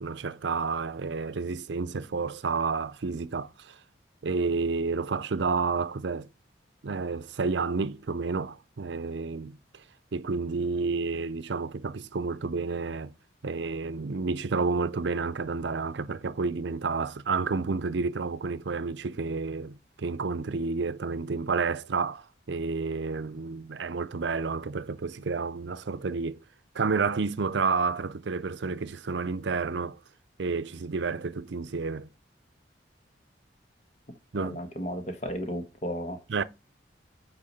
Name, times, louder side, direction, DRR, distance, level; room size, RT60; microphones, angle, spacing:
voice 1, 0.0-3.8 4.2-6.3 6.8-9.8 10.1-13.1 13.4-26.4 26.7-30.0 30.4-32.1 34.3-34.6 36.3-36.4, right 4 dB, 75° right, 0.6 m, -30 dB
voice 2, 34.3-36.2, equal, 40° left, 1.4 m, -34 dB
8.7 x 4.7 x 4.2 m
head